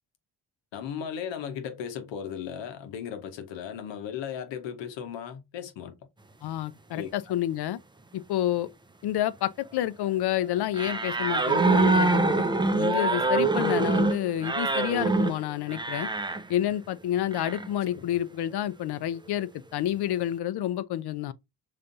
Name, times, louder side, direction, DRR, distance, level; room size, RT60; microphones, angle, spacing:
voice 1, 0.7-5.9 6.9-7.1 17.9-18.1, left 8 dB, 90° left, 1.0 m, -36 dB
voice 2, 6.4-7.8 8.1-8.7 9.0-12.5 12.7-16.1 16.5-21.3, left 12 dB, 65° left, 0.6 m, -29 dB
sound 1, 10.7-16.4 17.3-17.7, right 3 dB, 10° right, 0.4 m, -24 dB
5.5 x 3.3 x 2.6 m
cardioid pair, 65°, 42 cm